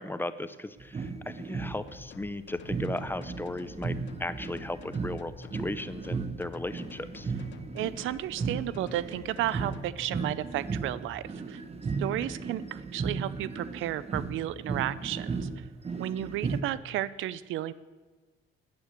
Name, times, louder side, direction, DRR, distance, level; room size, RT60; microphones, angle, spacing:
voice 1, 0.0-7.3 12.2-12.3, left 2 dB, 10° left, 13 dB, 0.6 m, -36 dB
sound 1, 0.8-2.2 2.6-16.6, right 4 dB, 30° right, 1.0 m, -36 dB
sound 2, 1.9-10.1, left 9 dB, 70° left, 0.7 m, -49 dB
voice 2, 7.7-11.6 12.0-15.6 16.0-17.7, right 13 dB, 85° right, 17 dB, 0.5 m, -33 dB
9.4 x 8.4 x 8.1 m, 1.3 s
cardioid pair, 90°, 20 cm